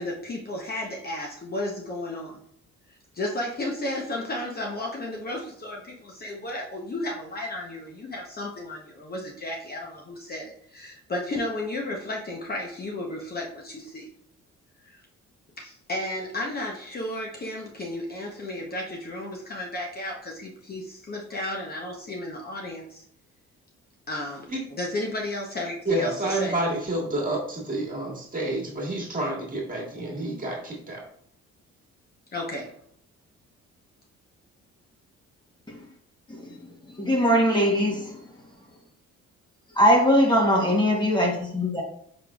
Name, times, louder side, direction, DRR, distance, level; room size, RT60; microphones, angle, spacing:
voice 1, 0.0-2.4 3.1-14.1 14.8-15.0 15.6-23.0 24.1-26.6 32.3-32.7, left 1 dB, 30° left, -1 dB, 0.8 m, -33 dB
voice 2, 25.9-31.0, right 2 dB, 25° right, -2 dB, 1.7 m, -29 dB
voice 3, 36.3-36.6 36.9-38.2 39.8-41.8, equal, 15° left, -2 dB, 1.1 m, -21 dB
5.0 x 3.7 x 2.3 m, 0.67 s
cardioid pair, 90°, 30 cm